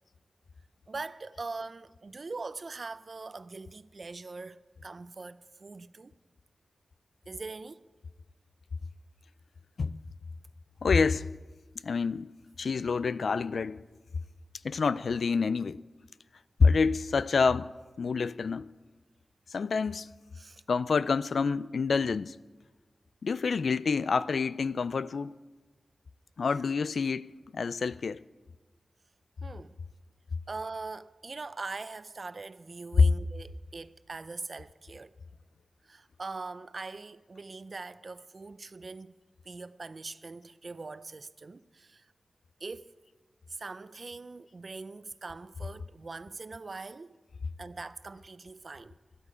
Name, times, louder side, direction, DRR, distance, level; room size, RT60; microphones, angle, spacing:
voice 1, 0.9-6.1 7.3-7.9 20.4-20.6 29.4-29.8 30.5-35.2 35.8-39.1 39.4-42.1 42.6-42.9 43.5-47.2 47.6-49.0, right 3 dB, 55° right, 0.4 m, -42 dB
voice 2, 10.8-11.3 11.8-12.3 12.6-13.8 14.6-15.8 16.6-17.7 18.0-18.7 19.5-20.1 20.7-22.4 23.2-25.3 26.4-28.2 33.0-33.1, left 5 dB, 85° left, 0.3 m, -27 dB
12.5 x 12.0 x 4.9 m
wide cardioid pair, 65°, 0 cm